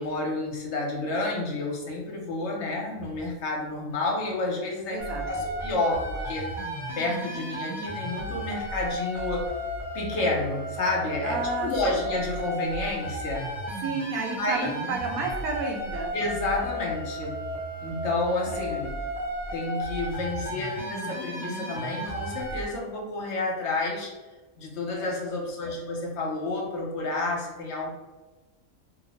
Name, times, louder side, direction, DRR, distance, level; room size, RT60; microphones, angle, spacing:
voice 1, 0.0-6.5 7.0-9.5 9.9-13.5 14.4-14.7 16.1-17.3 17.8-18.9 19.5-24.1 24.6-27.9, left 2 dB, 60° left, -1 dB, 0.9 m, -30 dB
voice 2, 4.9-5.4 11.2-12.0 13.8-16.1 18.5-18.8 24.9-25.2, right 4 dB, 85° right, 2 dB, 1.1 m, -32 dB
sound 1, 5.0-22.6, equal, 5° right, 0.5 m, -34 dB
2.8 x 2.0 x 4.0 m, 1.2 s
omnidirectional pair, 1.5 m